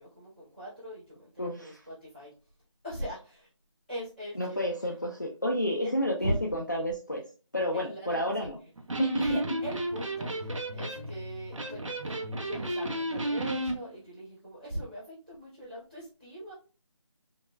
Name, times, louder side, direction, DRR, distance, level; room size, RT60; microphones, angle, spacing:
voice 1, 0.0-2.3 2.8-3.5 3.9-4.7 5.8-5.9 6.2-6.4 7.7-8.5 9.2-16.5, equal, ahead, -15 dB, 0.9 m, -40 dB
voice 2, 1.4-1.8 4.4-7.2 7.5-8.6 9.0-9.4, equal, 35° left, -1 dB, 0.4 m, -30 dB
Electric guitar, 8.8-13.8, right 1 dB, 80° right, 0.8 m, -33 dB
5.3 x 2.3 x 2.2 m, 0.36 s
figure-of-eight pair, 175°, 16 cm